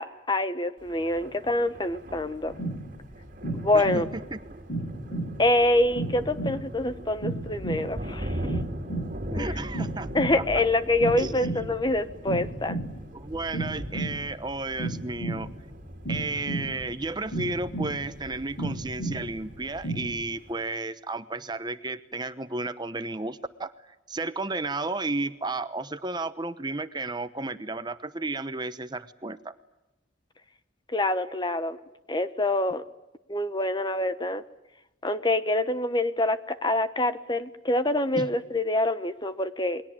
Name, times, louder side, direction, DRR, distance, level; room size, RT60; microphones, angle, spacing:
voice 1, 0.0-2.5 3.6-4.1 5.4-8.5 9.3-9.6 10.1-12.8 30.9-31.8 32.1-32.8 33.3-34.4 35.0-39.8, left 1 dB, 25° left, 11 dB, 1.2 m, -26 dB
Thunder, 0.8-20.5, right 1 dB, 45° right, 3.1 m, -41 dB
sound 1, 2.5-20.1, right 2 dB, 70° left, 6.6 m, -34 dB
voice 2, 9.3-10.1 10.4-10.6 11.2-11.5 13.1-15.5 16.1-29.6 38.1-38.3, right 2 dB, 25° right, 11 dB, 1.0 m, -33 dB
28.5 x 22.5 x 8.9 m, 0.93 s
head